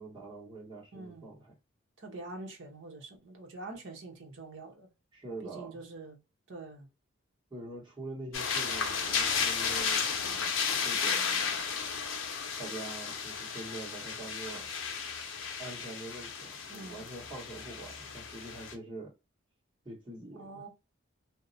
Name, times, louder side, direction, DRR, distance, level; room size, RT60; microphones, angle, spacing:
voice 1, 0.0-1.5 5.1-5.8 7.5-10.1 10.8-11.9 12.6-14.7 15.6-19.1 19.8-20.6, right 2 dB, 20° right, 1.4 m, -44 dB
voice 2, 0.9-1.3 2.0-4.9 5.4-6.2 6.5-6.9 16.7-17.0 20.3-20.7, right 2 dB, 60° right, 0.8 m, -45 dB
sound 1, 8.3-18.7, left 6 dB, 70° left, 0.6 m, -33 dB
2.7 x 2.0 x 2.5 m
head